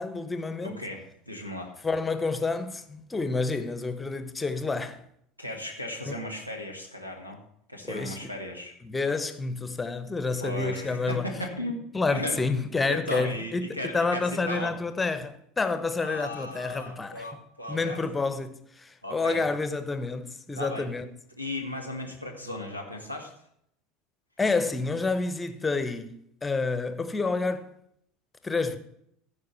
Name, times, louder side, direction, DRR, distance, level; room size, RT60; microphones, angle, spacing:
voice 1, 0.0-0.8 1.8-5.0 6.1-6.2 7.8-8.3 8.8-11.3 11.9-17.3 17.7-21.1 24.4-26.1 26.4-27.7 28.4-28.8, left 3 dB, 15° left, 0.9 m, -29 dB
voice 2, 0.6-1.7 5.4-7.4 7.7-8.8 10.4-12.4 12.9-14.8 16.0-18.0 19.0-19.5 20.5-20.9 21.4-23.3, left 1 dB, 90° right, 1.7 m, -36 dB
14.5 x 5.0 x 5.7 m
figure-of-eight pair, 70°, 0 cm